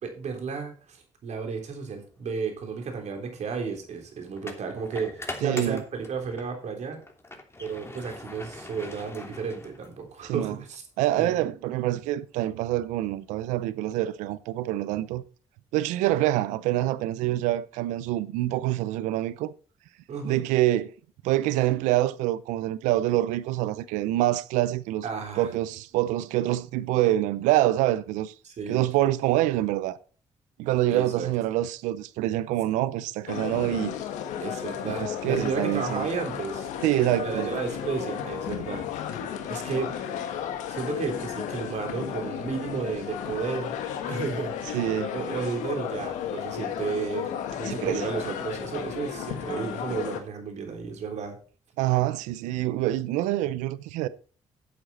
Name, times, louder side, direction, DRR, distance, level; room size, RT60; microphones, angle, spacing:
voice 1, 0.0-7.0 7.6-10.8 11.2-11.5 20.1-20.4 25.0-25.5 28.4-28.8 30.9-31.3 34.4-36.7 37.2-38.8 39.5-39.9 40.7-43.7 44.1-44.8 45.1-51.4, right 5 dB, 65° right, 3.6 m, -33 dB
sound 1, 2.5-2.6 4.4-6.5 7.0-10.2, left 2 dB, 20° left, 3.0 m, -41 dB
voice 2, 5.4-5.8 10.2-10.6 11.0-15.2 15.7-19.5 20.2-20.9 21.2-25.1 25.4-28.3 28.7-30.0 30.6-33.9 34.8-36.1 36.8-37.5 44.7-45.1 47.6-48.0 51.8-54.1, right 14 dB, 90° right, 0.6 m, -26 dB
sound 2, 33.3-50.2, left 9 dB, 85° left, 1.4 m, -34 dB
11.0 x 7.8 x 4.2 m
supercardioid pair, 55°, 12 cm